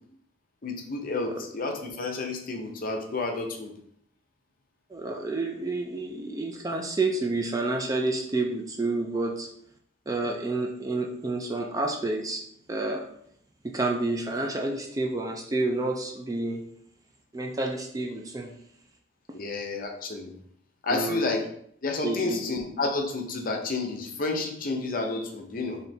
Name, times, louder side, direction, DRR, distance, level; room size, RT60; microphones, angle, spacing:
voice 1, 0.6-3.7 19.3-20.3 20.8-21.4 21.8-25.8, left 3 dB, 45° left, 2 dB, 0.6 m, -30 dB
voice 2, 4.9-9.5 10.1-12.4 12.7-13.0 13.6-16.6 17.3-18.5 20.9-21.2 22.0-22.4, right 2 dB, 15° right, 1 dB, 0.4 m, -29 dB
3.3 x 2.7 x 4.1 m, 0.68 s
head